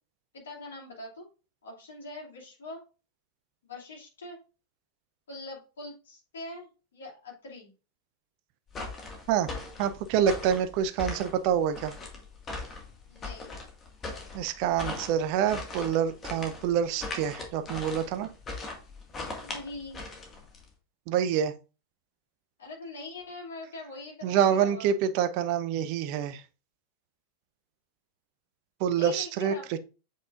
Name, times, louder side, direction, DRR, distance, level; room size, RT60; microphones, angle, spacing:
voice 1, 0.3-1.2 1.6-2.8 3.6-4.4 5.3-7.7 13.1-13.6 19.4-20.1 22.6-24.9 28.9-29.6, left 2 dB, 65° left, 2.6 m, -43 dB
sound 1, 8.7-20.7, left 3 dB, 25° left, 1.8 m, -39 dB
voice 2, 9.8-11.9 14.3-18.3 21.1-21.5 24.2-26.4 28.8-29.8, right 8 dB, 45° right, 0.6 m, -27 dB
7.5 x 5.2 x 2.5 m
figure-of-eight pair, 90°, 0 cm